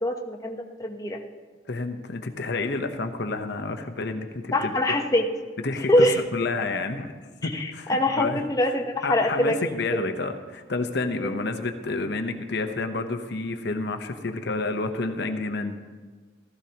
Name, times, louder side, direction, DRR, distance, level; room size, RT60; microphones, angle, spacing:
voice 1, 0.0-1.2 4.5-5.3 5.9-6.2 7.5-10.0 11.2-11.3, left 1 dB, 20° left, 2 dB, 0.9 m, -24 dB
voice 2, 1.7-4.7 5.6-6.1 6.3-7.1 7.4-8.4 9.0-15.8, left 3 dB, 60° left, 7 dB, 0.9 m, -29 dB
15.5 x 14.0 x 2.9 m, 1.4 s
head